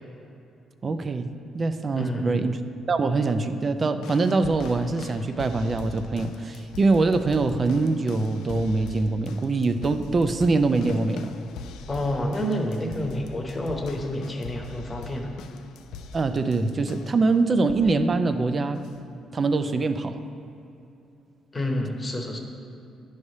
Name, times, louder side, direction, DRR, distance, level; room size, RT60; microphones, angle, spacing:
voice 1, 0.8-2.6 2.9-11.3 16.1-18.8 19.3-20.1, right 3 dB, 35° right, 9 dB, 0.4 m, -23 dB
voice 2, 2.0-2.5 11.9-15.3 21.5-22.4, left 1 dB, 25° left, 2 dB, 1.0 m, -29 dB
sound 1, 4.0-17.2 17.7-18.0 18.8-18.9, left 4 dB, 85° left, 0.3 m, -41 dB
9.7 x 3.3 x 5.4 m, 2.8 s
cardioid pair, 90°, 0 cm